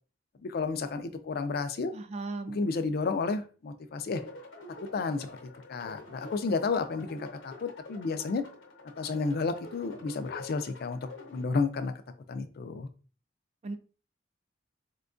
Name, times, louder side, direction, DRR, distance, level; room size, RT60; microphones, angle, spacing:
voice 1, 0.4-1.9 2.5-4.2 4.8-8.4 9.0-11.9 12.3-12.9, left 4 dB, 55° left, 10 dB, 0.4 m, -32 dB
voice 2, 1.9-2.6 13.6-13.7, right 3 dB, 35° right, 9 dB, 0.4 m, -36 dB
sound 1, 4.1-11.4, left 2 dB, 85° left, 0.8 m, -47 dB
4.4 x 2.2 x 2.5 m, 0.39 s
head